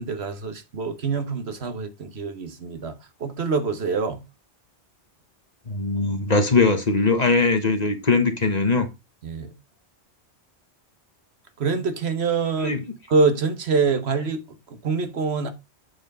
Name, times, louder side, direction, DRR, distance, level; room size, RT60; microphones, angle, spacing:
voice 1, 0.0-2.9 3.2-4.2 9.2-9.5 11.6-12.7 13.1-14.4 14.8-15.5, right 4 dB, 65° right, 1.4 m, -25 dB
voice 2, 5.7-8.9 12.6-12.8, left 3 dB, 40° left, 1.2 m, -21 dB
8.2 x 4.6 x 5.3 m
omnidirectional pair, 1.2 m